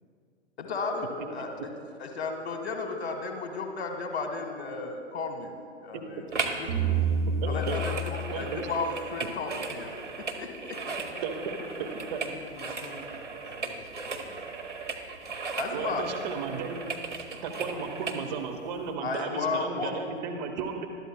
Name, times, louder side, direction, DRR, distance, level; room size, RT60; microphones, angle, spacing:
voice 1, 0.6-1.7 2.0-5.5 5.8-6.2 6.6-6.7 7.4-9.9 10.4-10.8 15.6-16.0 19.0-19.9, left 4 dB, 65° left, 4 dB, 1.3 m, -33 dB
sound 1, 6.3-6.7 6.9-18.2 18.8-18.9, right 4 dB, 85° right, 1.3 m, -37 dB
sound 2, 6.7-9.9, right 4 dB, 60° right, 3.3 m, -30 dB
voice 2, 7.4-7.8 8.3-8.7 11.2-11.5 12.1-12.2 15.7-16.8 17.4-20.9, right 6 dB, 40° right, 3 dB, 1.1 m, -34 dB
voice 3, 10.9-14.5 15.2-15.3 15.8-16.0 17.5-17.6, left 1 dB, 20° left, -3 dB, 3.1 m, -49 dB
20.5 x 13.0 x 2.2 m, 2.3 s
figure-of-eight pair, 110°, 35 cm